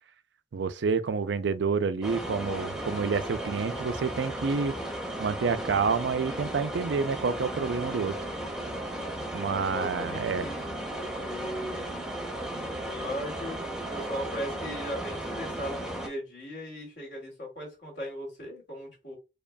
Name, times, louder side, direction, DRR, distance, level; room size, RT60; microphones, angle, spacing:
voice 1, 0.5-4.8 5.2-8.1 9.3-10.5, right 5 dB, 85° right, 0.4 m, -28 dB
sound 1, 2.0-16.1, right 1 dB, 5° right, 0.6 m, -35 dB
voice 2, 9.5-12.0 12.9-19.2, equal, 80° left, 2.2 m, -38 dB
5.0 x 2.3 x 2.2 m
head